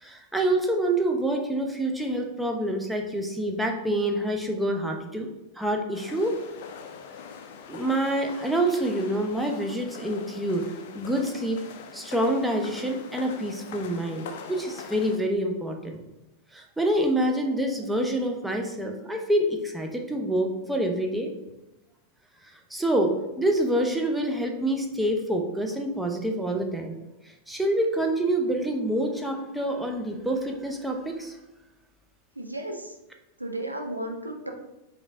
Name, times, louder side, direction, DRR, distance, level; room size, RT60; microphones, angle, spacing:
voice 1, 0.0-5.3 5.6-6.3 7.7-10.7 10.9-11.6 11.9-16.0 16.5-21.3 22.7-27.0 27.2-31.4, right 1 dB, 5° right, 2 dB, 0.6 m, -27 dB
sound 1, 5.9-15.2, left 6 dB, 55° left, 0.5 m, -43 dB
voice 2, 32.4-32.9 33.4-34.5, right 1 dB, 85° right, 4 dB, 0.5 m, -34 dB
4.9 x 2.7 x 3.4 m, 1.0 s
figure-of-eight pair, 90°, 0 cm